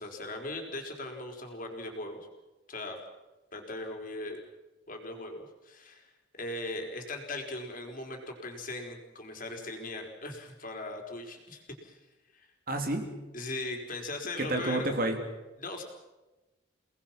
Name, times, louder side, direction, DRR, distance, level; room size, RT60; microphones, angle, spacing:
voice 1, 0.0-2.3 2.7-3.0 3.5-4.4 4.9-6.1 6.3-12.0 12.3-12.5 13.3-14.9 15.6-15.8, left 2 dB, 45° left, 3 dB, 4.3 m, -39 dB
voice 2, 12.7-13.1 14.4-15.2, right 2 dB, 45° right, 5 dB, 3.1 m, -29 dB
30.0 x 19.5 x 5.9 m, 1.1 s
head